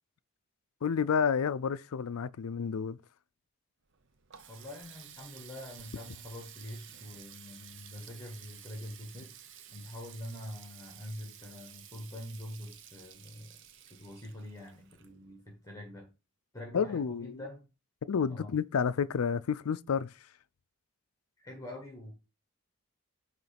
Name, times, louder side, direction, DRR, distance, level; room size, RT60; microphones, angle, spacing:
voice 1, 0.8-3.0 16.7-17.4 18.1-20.3, left 6 dB, 80° left, 0.4 m, -30 dB
Water tap faucet, 3.9-15.5, right 9 dB, 55° right, 0.8 m, -52 dB
voice 2, 4.5-9.3 9.7-13.6 13.9-16.1 16.5-17.6 18.3-18.5 21.4-22.1, left 1 dB, 15° left, 1.4 m, -45 dB
9.2 x 3.2 x 5.8 m
head